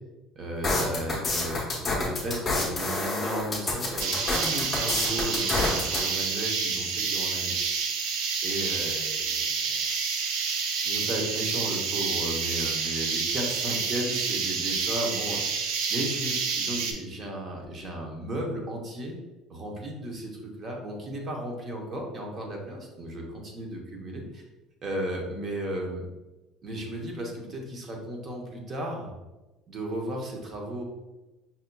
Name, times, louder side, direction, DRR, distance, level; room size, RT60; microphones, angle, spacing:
voice 1, 0.3-7.5 8.4-10.0 10.8-19.2 19.5-24.4 24.8-26.0 26.6-29.1 29.7-30.8, right 1 dB, 30° right, 1 dB, 0.7 m, -35 dB
sound 1, 0.6-6.0, left 2 dB, 20° left, 0.9 m, -28 dB
sound 2, 4.0-16.9, right 5 dB, 85° right, 0.5 m, -29 dB
5.4 x 2.7 x 2.2 m, 1.1 s
cardioid pair, 160°, 0 cm